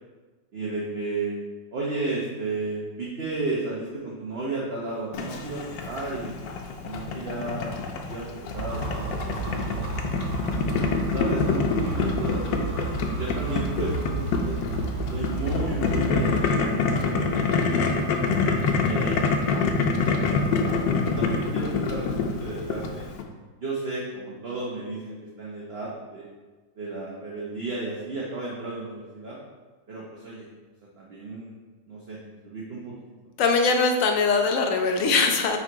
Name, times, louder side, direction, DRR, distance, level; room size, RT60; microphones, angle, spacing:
voice 1, 0.5-1.3 1.7-6.4 6.8-7.7 8.1-10.2 11.1-14.6 15.1-18.2 18.8-19.8 20.2-20.8 21.0-23.0 23.6-26.3 26.8-29.4 29.9-30.4 31.0-31.5 31.9-32.2 32.4-32.9, right 3 dB, 45° right, -5 dB, 1.0 m, -33 dB
Boiling, 5.1-23.2, left 4 dB, 90° left, 1.4 m, -26 dB
sound 1, 8.5-16.4, right 3 dB, 80° right, 1.8 m, -31 dB
voice 2, 33.4-35.6, left 4 dB, 60° left, 4 dB, 0.9 m, -21 dB
6.3 x 3.9 x 4.6 m, 1.3 s
omnidirectional pair, 1.9 m